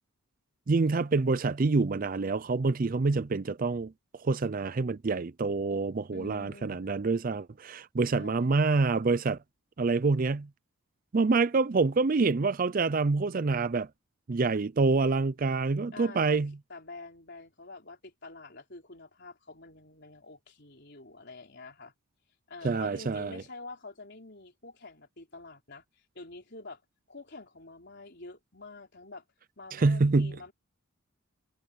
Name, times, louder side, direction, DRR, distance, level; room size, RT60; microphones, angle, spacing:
voice 1, 0.7-3.9 4.2-9.4 9.8-10.5 11.1-13.9 14.3-16.5 22.6-23.4 29.7-30.4, right 3 dB, 40° right, 0.4 m, -26 dB
voice 2, 6.1-6.9 8.1-8.7 15.9-16.4 16.7-21.9 22.5-25.8 26.1-26.8 27.1-29.2 29.6-30.5, left 3 dB, 50° left, 4.2 m, -47 dB
head